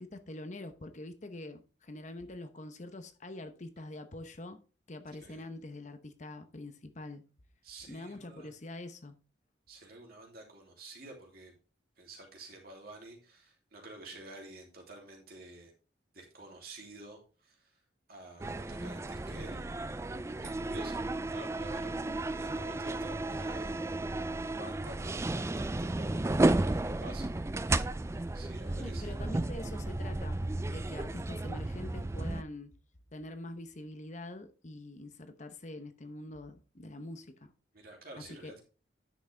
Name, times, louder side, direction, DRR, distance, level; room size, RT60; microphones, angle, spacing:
voice 1, 0.0-4.6 4.9-7.2 7.9-9.1 21.9-22.2 28.8-30.4 30.7-32.7 33.1-37.5 38.2-38.6, left 1 dB, 40° left, 0.9 m, -45 dB
voice 2, 7.6-8.5 9.7-11.5 12.0-15.7 16.1-17.8 18.1-19.6 20.4-22.0 22.4-24.0 24.6-27.3 28.1-29.2 37.7-38.6, right 2 dB, 55° right, 2.9 m, -49 dB
sound 1, 18.4-32.4, right 2 dB, 15° right, 0.3 m, -33 dB
10.0 x 6.1 x 3.4 m
head